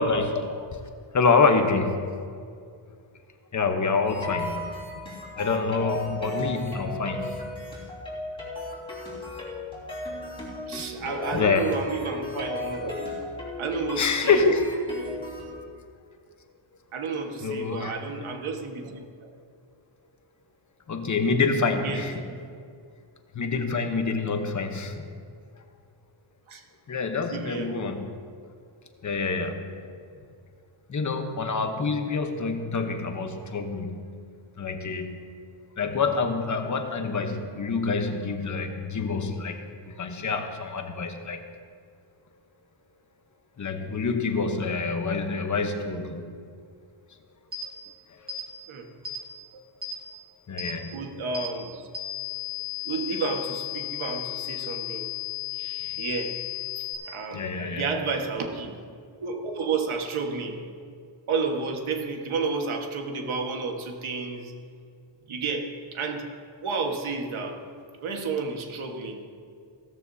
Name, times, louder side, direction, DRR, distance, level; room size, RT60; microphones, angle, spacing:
voice 1, 0.0-0.8 1.1-1.9 3.5-4.6 5.3-7.5 11.3-11.8 14.0-14.7 17.4-18.0 20.9-22.3 23.3-25.1 26.9-28.1 29.0-29.7 30.9-34.1 34.6-35.3 35.8-41.4 43.6-46.3 47.6-47.7 48.1-48.4 50.5-51.0 57.1-57.9, left 4 dB, 35° left, 6 dB, 1.0 m, -26 dB
sound 1, 4.1-15.5, left 2 dB, 10° left, 3.5 m, -35 dB
voice 2, 10.7-13.2 13.6-14.4 16.9-19.3 21.8-22.4 26.5-26.6 27.3-27.9 48.7-48.9 49.5-49.6 50.9-51.8 52.8-55.1 55.5-56.3 57.1-58.7 59.2-60.6 61.3-64.5 65.3-66.3 66.6-67.6 68.0-69.2, right 4 dB, 75° right, 2 dB, 1.6 m, -31 dB
sound 2, 47.5-47.7 48.3-48.4 49.0-49.2 49.8-50.0 50.6-50.7 51.3-51.5 51.9-56.9, left 10 dB, 20° right, 2.4 m, -34 dB
16.5 x 13.5 x 2.8 m, 2.2 s
wide cardioid pair, 170°, 49 cm